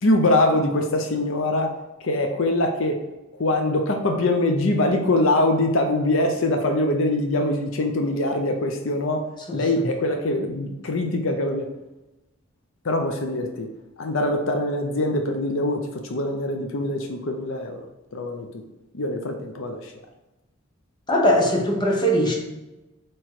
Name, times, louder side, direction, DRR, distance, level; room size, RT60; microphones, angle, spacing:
voice 1, 0.0-3.0 3.3-11.7 12.8-13.7 14.0-17.9 18.1-18.6 18.9-19.9, left 1 dB, 65° left, 4 dB, 0.7 m, -23 dB
voice 2, 9.5-9.9 21.1-22.4, equal, 20° left, -1 dB, 1.1 m, -21 dB
7.6 x 3.1 x 4.7 m, 1.0 s
head